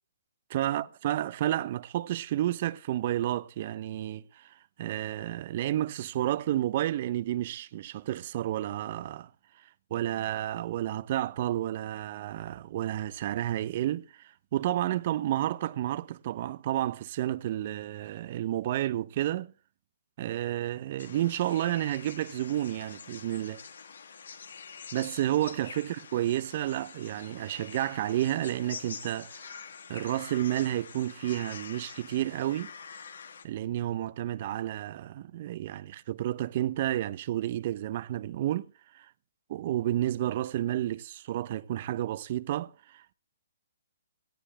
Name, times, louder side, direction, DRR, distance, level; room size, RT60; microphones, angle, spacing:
voice 1, 0.5-9.3 9.9-19.5 20.2-23.6 24.9-29.5 29.9-32.7 33.4-39.1 39.5-43.1, right 13 dB, 40° right, 1.0 m, -31 dB
sound 1, 21.0-33.4, left 6 dB, 75° left, 2.6 m, -46 dB
18.5 x 14.0 x 3.3 m
hypercardioid pair, 155°, 0 cm